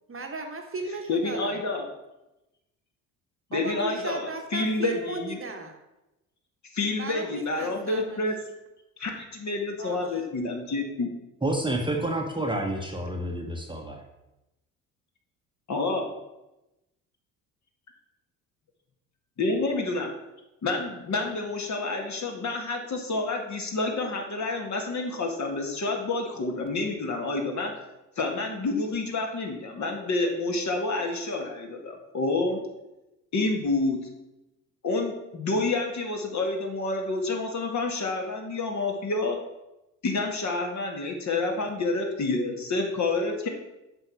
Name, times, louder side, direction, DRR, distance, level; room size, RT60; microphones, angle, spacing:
voice 1, 0.1-1.6 3.5-5.7 7.0-8.3 9.8-10.2, right 3 dB, 30° right, 4 dB, 1.2 m, -36 dB
voice 2, 1.1-1.9 3.5-5.4 6.7-8.4 9.0-11.1 15.7-16.1 19.4-20.1 20.6-27.7 28.1-32.6 33.3-34.0 34.8-39.4 40.0-43.5, left 3 dB, 40° left, 2 dB, 1.8 m, -28 dB
voice 3, 11.4-14.0, right 1 dB, 10° right, 1 dB, 1.0 m, -29 dB
7.8 x 5.7 x 4.5 m, 0.96 s
hypercardioid pair, 55°, 43 cm